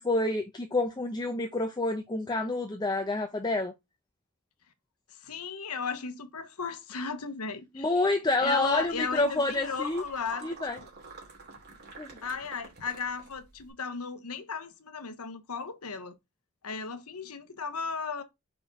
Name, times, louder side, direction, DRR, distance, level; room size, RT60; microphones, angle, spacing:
voice 1, 0.0-3.7 7.7-10.0 10.4-10.8 12.0-12.1, left 2 dB, 20° left, 0.7 m, -28 dB
voice 2, 5.1-8.1 8.4-10.9 12.2-16.1 16.6-18.2, left 5 dB, 80° left, 1.1 m, -36 dB
sound 1, 8.4-13.7, right 3 dB, 45° right, 2.6 m, -48 dB
5.3 x 4.5 x 4.8 m
head